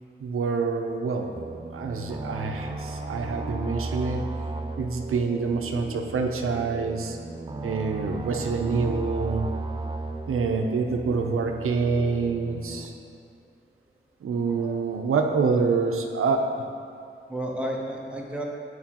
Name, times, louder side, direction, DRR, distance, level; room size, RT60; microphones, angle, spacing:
voice 1, 0.2-1.3 1.7-4.2 4.8-7.2 7.6-9.5 10.3-12.9 14.2-16.6, right 4 dB, 90° right, 3 dB, 0.5 m, -26 dB
sound 1, 1.3-12.9, right 2 dB, 25° right, 0.4 m, -35 dB
voice 2, 17.3-18.4, right 1 dB, 5° right, -2 dB, 0.7 m, -32 dB
8.0 x 4.7 x 2.9 m, 2.3 s
wide cardioid pair, 110°, 21 cm